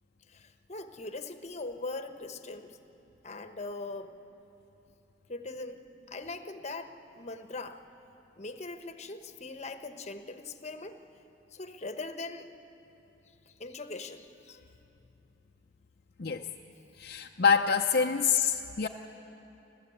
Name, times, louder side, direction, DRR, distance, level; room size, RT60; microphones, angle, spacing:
voice 1, 0.3-2.8 3.2-4.1 5.3-7.8 8.4-11.0 11.5-12.5 13.5-14.6, left 3 dB, 35° left, 8 dB, 1.0 m, -41 dB
voice 2, 17.0-18.9, left 6 dB, 55° left, 2 dB, 0.6 m, -26 dB
30.0 x 13.0 x 8.5 m, 3.0 s
head